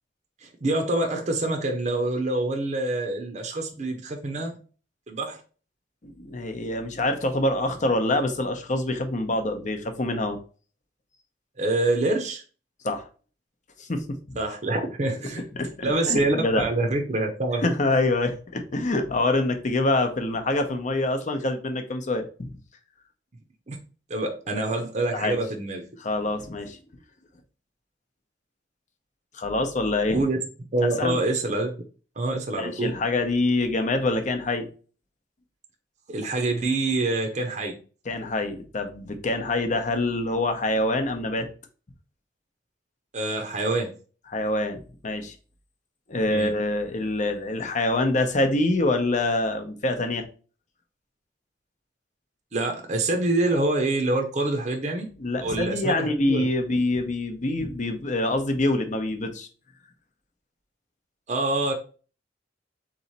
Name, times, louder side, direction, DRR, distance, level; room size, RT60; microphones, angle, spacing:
voice 1, 0.4-4.6 5.1-5.4 11.6-12.4 14.4-15.4 15.8-17.7 23.7-23.8 24.1-25.8 30.1-30.4 30.7-31.7 32.2-32.9 36.1-37.7 43.1-43.9 46.3-46.5 52.5-55.1 55.4-56.5 61.3-61.7, right 2 dB, 40° right, 4 dB, 0.6 m, -26 dB
voice 2, 6.0-10.4 12.8-13.1 13.8-14.4 15.5-16.6 17.6-22.5 25.1-25.4 26.0-26.8 29.3-30.2 31.0-31.2 32.6-34.7 38.1-41.5 44.3-45.3 46.1-50.2 55.2-59.5, left 2 dB, 40° left, 7 dB, 0.7 m, -25 dB
4.0 x 3.1 x 4.1 m, 0.38 s
head